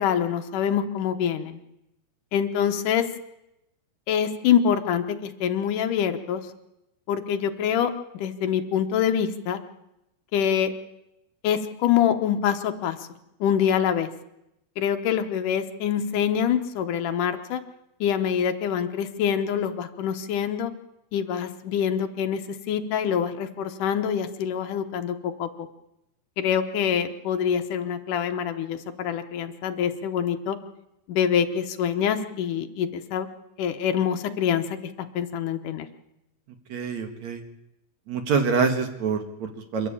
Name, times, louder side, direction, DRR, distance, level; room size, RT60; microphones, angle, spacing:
voice 1, 0.0-1.6 2.3-3.1 4.1-6.4 7.1-9.6 10.3-10.7 11.4-13.1 13.4-14.1 14.8-17.6 18.0-20.7 21.1-25.5 26.4-30.6 31.1-33.3 33.6-35.9, left 8 dB, 65° left, 7 dB, 2.3 m, -25 dB
voice 2, 36.7-37.4 38.1-39.9, right 5 dB, 55° right, 6 dB, 2.6 m, -26 dB
27.5 x 11.5 x 8.7 m, 0.89 s
omnidirectional pair, 4.5 m